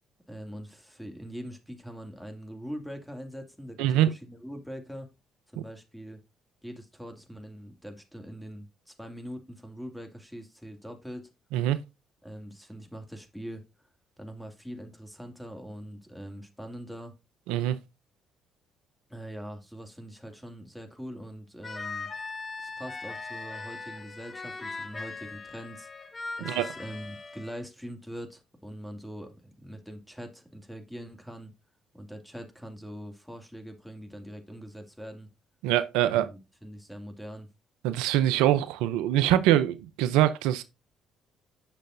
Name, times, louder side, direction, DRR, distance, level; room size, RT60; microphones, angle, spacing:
voice 1, 0.3-5.1 5.5-6.2 6.6-11.3 12.2-13.6 14.2-17.1 19.1-22.1 22.6-25.9 26.4-31.5 31.9-35.3 36.0-37.5, equal, ahead, 2.2 m, -42 dB
voice 2, 3.8-4.1 11.5-11.8 17.5-17.8 26.4-26.7 35.6-36.3 37.8-40.6, right 12 dB, 80° right, 0.5 m, -24 dB
sound 1, 21.6-27.6, left 3 dB, 35° left, 1.0 m, -39 dB
9.0 x 6.4 x 2.6 m
hypercardioid pair, 55°, 0 cm